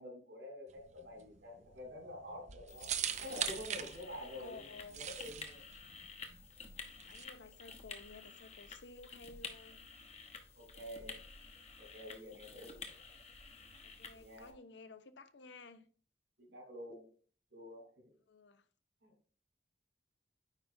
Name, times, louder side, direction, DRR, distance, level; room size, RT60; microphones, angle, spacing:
voice 1, 0.0-2.9 3.2-4.6 4.9-5.6 10.6-11.2 11.8-13.2 14.1-14.5 16.4-17.1 17.5-18.1 19.0-19.1, left 1 dB, 75° right, 3.6 m, -48 dB
sound 1, 0.7-7.2, right 9 dB, 40° right, 0.5 m, -42 dB
sound 2, 2.7-14.5, left 4 dB, 35° left, 1.0 m, -51 dB
voice 2, 4.2-5.0 7.0-9.9 13.8-15.9 18.3-18.7, left 3 dB, 75° left, 0.7 m, -54 dB
9.2 x 5.1 x 2.6 m
head